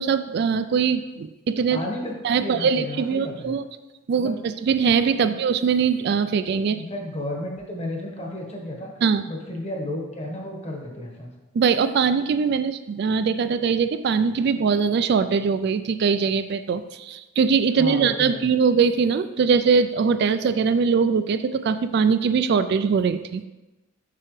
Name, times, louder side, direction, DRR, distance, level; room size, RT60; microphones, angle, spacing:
voice 1, 0.0-1.8 2.2-3.6 4.1-6.8 9.0-9.2 11.5-23.4, right 6 dB, 55° right, 11 dB, 0.3 m, -22 dB
voice 2, 1.7-3.5 4.2-4.4 5.2-5.4 6.7-8.9 9.3-11.3 17.8-18.5, left 1 dB, 30° left, 1 dB, 1.2 m, -32 dB
7.5 x 6.0 x 3.2 m, 1.1 s
head